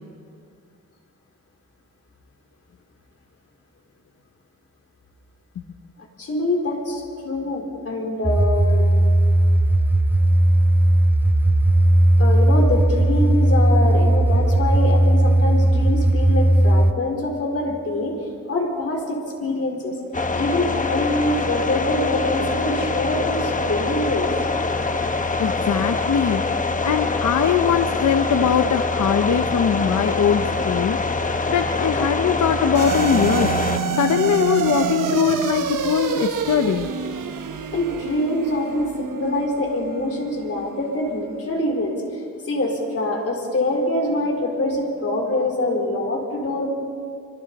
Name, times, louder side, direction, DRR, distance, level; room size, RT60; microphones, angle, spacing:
voice 1, 6.2-8.9 12.2-18.1 18.5-19.9 20.3-24.3 37.7-42.0 42.4-46.7, left 2 dB, 50° left, 0 dB, 4.3 m, -24 dB
sound 1, 8.2-16.9, right 1 dB, 5° right, 0.4 m, -17 dB
sound 2, 20.1-33.8, left 3 dB, 25° left, 1.1 m, -24 dB
voice 2, 25.4-26.6 26.8-36.9, left 7 dB, 65° left, 8 dB, 0.9 m, -21 dB
sound 3, 32.7-41.3, right 6 dB, 75° right, 1.4 m, -27 dB
25.5 x 25.0 x 4.2 m, 2.4 s
wide cardioid pair, 110°, 32 cm